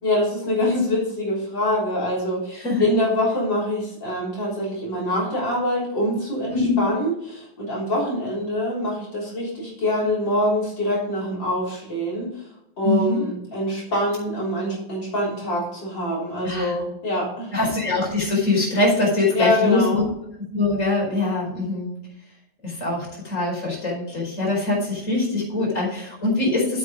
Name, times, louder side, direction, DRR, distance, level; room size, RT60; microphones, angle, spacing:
voice 1, 0.0-12.4 12.8-17.5 19.3-20.0, left 1 dB, 85° left, -6 dB, 4.5 m, -24 dB
voice 2, 6.5-6.8 12.8-13.3 16.4-16.7 17.5-20.1 20.5-21.9 22.6-26.8, left 2 dB, 40° left, -3 dB, 5.1 m, -23 dB
8.8 x 7.9 x 5.1 m, 0.77 s
omnidirectional pair, 2.0 m